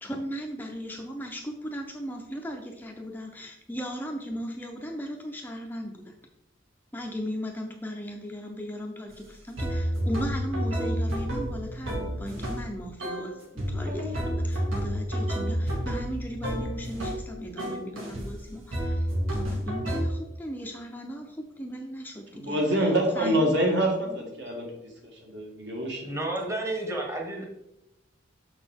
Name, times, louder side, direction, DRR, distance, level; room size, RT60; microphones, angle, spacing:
voice 1, 0.0-6.1 6.9-22.6 23.2-23.5 24.1-24.2, equal, 10° left, 1 dB, 0.5 m, -37 dB
sound 1, 9.1-9.2 9.6-12.7 13.0-13.3 13.6-17.2 17.6-18.3 18.7-20.0, equal, 85° right, 2.1 m, -30 dB
voice 2, 22.3-24.9 25.3-26.1, right 1 dB, 60° right, 0 dB, 1.6 m, -26 dB
voice 3, 26.0-27.4, right 1 dB, 15° right, 0 dB, 1.0 m, -31 dB
6.4 x 6.1 x 3.5 m, 0.89 s
head